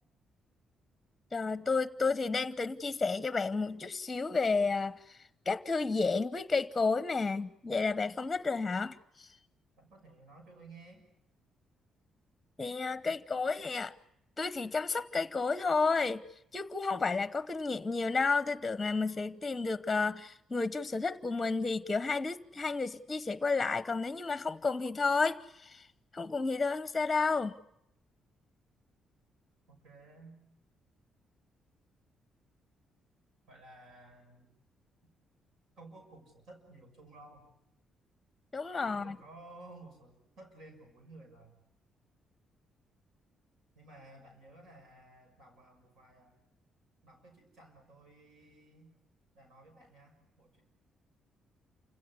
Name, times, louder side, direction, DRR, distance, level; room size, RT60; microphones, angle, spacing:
voice 1, 1.3-5.0 5.5-9.3 12.6-13.9 14.4-16.2 16.5-25.8 26.1-27.6 38.5-39.2, left 4 dB, 20° left, 0.9 m, -31 dB
voice 2, 9.8-11.1 29.7-30.4 33.5-34.6 35.8-37.5 38.8-41.6 43.7-46.4 47.0-48.9 49.3-50.6, right 2 dB, 75° right, 6.3 m, -55 dB
28.0 x 16.5 x 9.7 m
cardioid pair, 90°, 0 cm